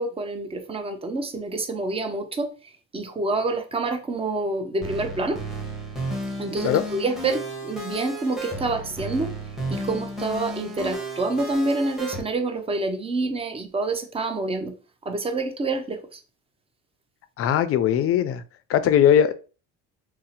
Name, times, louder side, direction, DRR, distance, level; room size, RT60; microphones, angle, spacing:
voice 1, 0.0-2.5 2.9-5.4 6.4-9.4 9.7-14.7 15.0-16.2, right 2 dB, 20° right, 5 dB, 0.5 m, -27 dB
sound 1, 4.8-12.2, right 1 dB, ahead, 1.0 m, -33 dB
voice 2, 17.4-18.4 18.7-19.3, left 9 dB, 45° left, 12 dB, 0.4 m, -19 dB
2.7 x 2.1 x 3.9 m, 0.35 s
cardioid pair, 110°, 32 cm